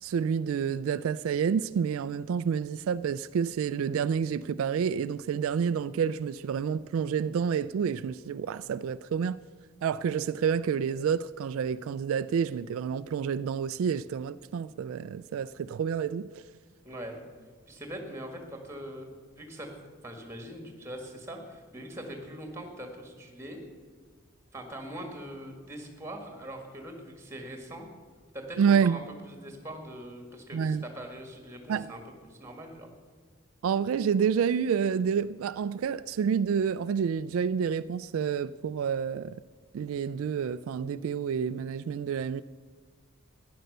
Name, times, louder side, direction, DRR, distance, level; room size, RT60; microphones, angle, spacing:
voice 1, 0.0-9.4 9.8-16.4 28.6-29.0 30.5-30.8 31.7-31.9 33.6-39.4 39.7-42.4, right 7 dB, 75° right, 0.3 m, -29 dB
voice 2, 16.8-17.2 17.7-19.1 19.4-19.7 20.0-23.6 24.5-27.9 28.3-32.9, right 1 dB, 10° right, 1.8 m, -42 dB
13.5 x 10.5 x 6.6 m
head